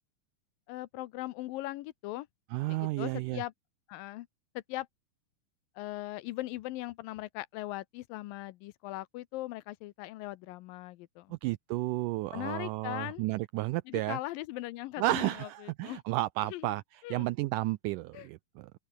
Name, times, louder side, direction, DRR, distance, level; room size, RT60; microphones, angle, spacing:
voice 1, 0.7-2.3 2.7-3.5 3.9-4.3 4.6-4.9 5.8-11.3 12.3-13.2 13.9-16.0 16.4-16.7 17.0-17.3 18.1-18.3, left 17 dB, 80° left, 2.4 m, -39 dB
voice 2, 2.5-3.4 11.3-14.2 15.0-16.8 17.1-18.7, right 18 dB, 85° right, 1.8 m, -32 dB
open air
omnidirectional pair, 4.2 m